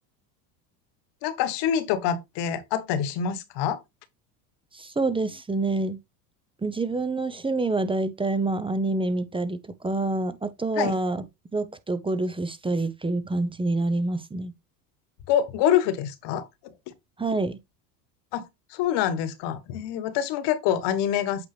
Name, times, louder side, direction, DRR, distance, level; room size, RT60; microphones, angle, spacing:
voice 1, 1.2-3.8 10.8-11.0 15.3-16.5 16.9-17.0 18.3-21.5, left 9 dB, 60° left, 1.4 m, -26 dB
voice 2, 4.7-6.0 6.6-11.2 11.5-14.5 17.2-17.6, right 2 dB, 10° right, 0.7 m, -27 dB
8.3 x 4.8 x 3.3 m
hypercardioid pair, 90°, 47 cm